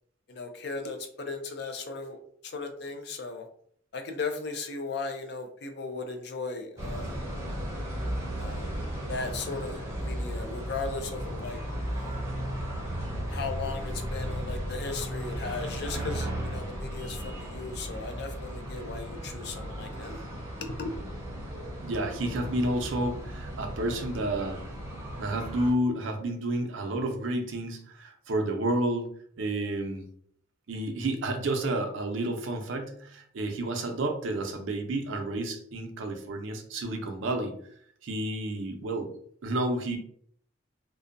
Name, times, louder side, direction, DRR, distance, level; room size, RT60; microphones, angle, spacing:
voice 1, 0.3-3.4 3.9-7.3 8.4-8.7 9.1-11.6 11.9-12.2 13.3-20.2 20.6-20.9, left 4 dB, 55° left, 5 dB, 0.4 m, -37 dB
sound 1, 6.8-25.7, equal, 15° right, 0.6 m, -35 dB
voice 2, 21.8-24.6 25.2-30.0 30.7-37.5 38.0-39.1 39.4-40.0, right 1 dB, 80° right, 5 dB, 0.5 m, -30 dB
2.6 x 2.1 x 2.5 m, 0.63 s
head